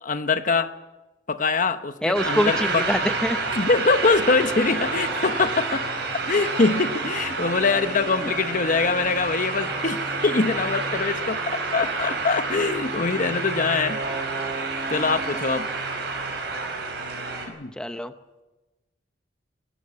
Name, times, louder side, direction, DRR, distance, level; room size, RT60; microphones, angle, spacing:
voice 1, 0.0-0.8 1.3-2.8 3.5-5.9 6.3-14.0 14.9-15.7 17.5-17.7, left 4 dB, 45° left, 10 dB, 1.0 m, -23 dB
voice 2, 2.0-3.4 8.2-8.3 17.8-18.1, left 1 dB, 5° left, 8 dB, 0.7 m, -25 dB
sound 1, 2.1-17.5, right 3 dB, 65° right, 5.3 m, -29 dB
19.0 x 18.5 x 8.6 m, 1.1 s
head